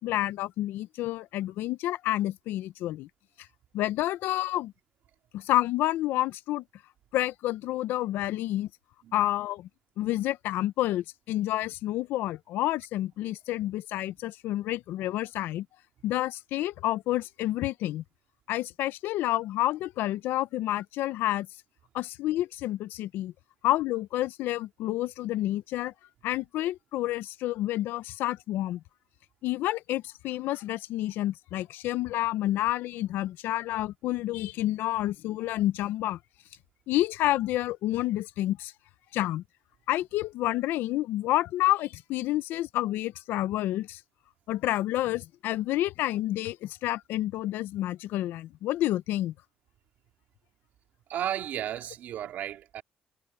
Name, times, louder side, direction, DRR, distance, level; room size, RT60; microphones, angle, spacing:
voice 1, 0.0-3.1 3.7-4.7 5.3-6.6 7.1-8.7 9.1-9.7 10.0-15.7 16.0-18.0 18.5-21.5 21.9-23.3 23.6-25.9 26.2-28.8 29.4-36.2 36.9-38.7 39.1-39.4 39.9-44.0 44.5-49.3, left 15 dB, 85° left, 0.5 m, -29 dB
voice 2, 51.1-52.8, right 11 dB, 60° right, 3.1 m, -34 dB
cardioid pair, 180°, 3 cm